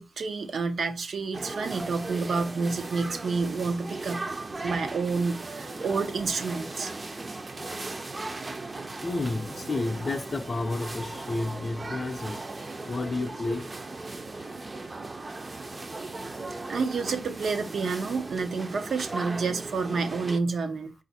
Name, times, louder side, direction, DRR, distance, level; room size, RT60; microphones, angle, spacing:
voice 1, 0.0-4.3 4.6-6.9 16.7-20.9, right 4 dB, 90° right, 0.6 m, -29 dB
sound 1, 1.3-20.4, right 2 dB, 35° right, 0.4 m, -37 dB
voice 2, 9.0-12.4 12.8-13.7, left 3 dB, 40° left, 0.5 m, -31 dB
4.9 x 2.4 x 4.0 m
wide cardioid pair, 135°, 0 cm